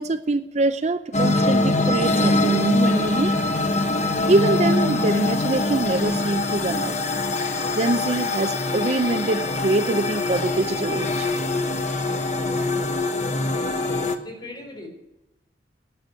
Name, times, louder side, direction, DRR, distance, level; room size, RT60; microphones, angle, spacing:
voice 1, 0.0-3.3 4.3-7.0 7.7-11.3, right 2 dB, 40° right, 11 dB, 0.5 m, -24 dB
sound 1, 1.1-14.1, left 2 dB, 40° left, 1.1 m, -23 dB
voice 2, 14.1-14.9, left 2 dB, 25° left, 2 dB, 3.6 m, -39 dB
12.0 x 9.0 x 9.1 m, 0.92 s
head